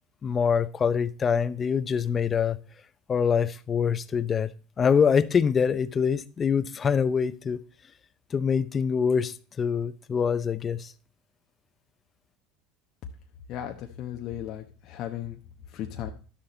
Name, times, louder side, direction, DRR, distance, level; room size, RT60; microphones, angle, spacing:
voice 1, 0.2-2.6 3.1-4.5 4.8-7.6 8.3-10.9, left 6 dB, 30° left, 0.6 m, -25 dB
voice 2, 13.5-15.4 15.7-16.1, left 11 dB, 55° left, 1.0 m, -36 dB
11.5 x 6.7 x 4.3 m
supercardioid pair, 100°, 0 cm